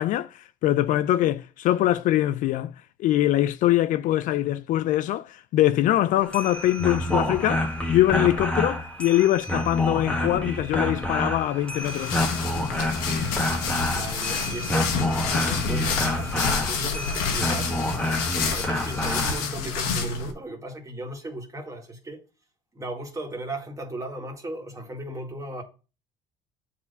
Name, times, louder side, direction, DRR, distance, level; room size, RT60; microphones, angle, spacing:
voice 1, 0.0-2.7 3.0-12.2, left 14 dB, 60° left, 0.4 m, -23 dB
sound 1, 6.2-19.4, left 1 dB, 5° left, 1.6 m, -28 dB
sound 2, 11.8-20.3, left 5 dB, 85° left, 1.3 m, -29 dB
voice 2, 13.8-17.7 18.3-22.2 22.7-25.6, right 1 dB, 20° right, 2.1 m, -36 dB
7.3 x 4.2 x 5.5 m
supercardioid pair, 90°, 15 cm